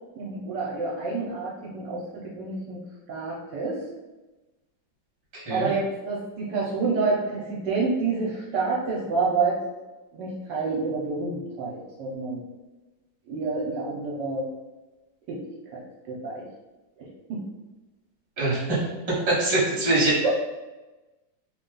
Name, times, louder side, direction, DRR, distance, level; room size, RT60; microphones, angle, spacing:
voice 1, 0.2-2.8 3.1-3.8 5.5-9.6 10.1-12.4 13.3-14.5 15.3-15.4 15.7-15.8 16.1-16.4 17.3-17.4 20.2-20.3, right 4 dB, 70° right, -5 dB, 1.2 m, -28 dB
voice 2, 5.3-5.7 18.4-18.9 19.3-20.2, right 2 dB, 20° right, -7 dB, 1.1 m, -23 dB
3.5 x 2.3 x 3.8 m, 1.1 s
omnidirectional pair, 2.2 m